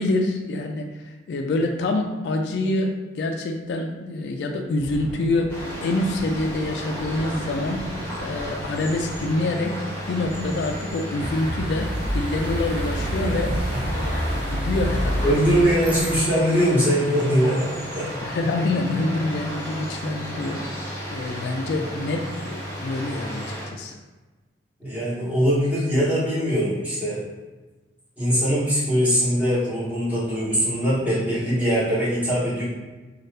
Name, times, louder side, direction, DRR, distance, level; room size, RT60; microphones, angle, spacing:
voice 1, 0.0-7.9 8.2-9.8 10.1-13.6 13.9-15.7 18.2-20.6 21.1-24.0, left 2 dB, 70° left, 4 dB, 0.3 m, -26 dB
Thunder, 4.7-13.6 14.0-14.2 14.6-14.8 15.4-15.9, equal, 65° right, 0.7 m, -41 dB
sound 1, 5.5-23.7, equal, 15° left, 0.9 m, -34 dB
sound 2, 11.2-16.2, equal, 30° right, 0.6 m, -27 dB
voice 2, 15.2-18.1 24.8-27.2 28.2-32.6, equal, 10° right, -11 dB, 1.2 m, -22 dB
2.7 x 2.3 x 3.2 m, 1.2 s
head